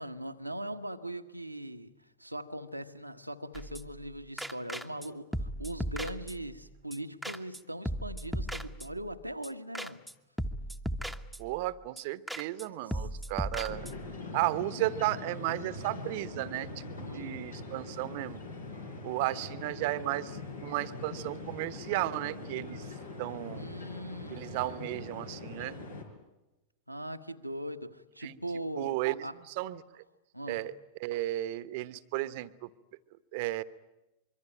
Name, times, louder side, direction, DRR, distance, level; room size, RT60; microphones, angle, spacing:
voice 1, 0.0-10.0 12.9-13.0 17.0-17.4 23.5-24.5 26.9-28.9 29.2-29.3 30.3-30.6, right 1 dB, 90° right, 1.3 m, -40 dB
sound 1, 3.5-4.1 4.4-5.1 5.3-6.6 6.9-7.0 7.2-7.6 7.9-9.2 9.4-9.5 9.8-10.1 10.4-11.7 12.0-12.1 12.3-12.7 12.9-14.1, equal, ahead, 1.2 m, -37 dB
voice 2, 11.4-13.9 14.3-18.4 19.0-22.9 23.2-23.7 24.3-25.8 28.2-28.4 28.8-30.0 30.5-30.7 31.0-32.7 33.3-33.6, right 16 dB, 50° right, 1.1 m, -34 dB
sound 2, 13.7-26.0, left 3 dB, 80° left, 5.0 m, -42 dB
25.5 x 23.5 x 8.9 m
figure-of-eight pair, 90°, 0 cm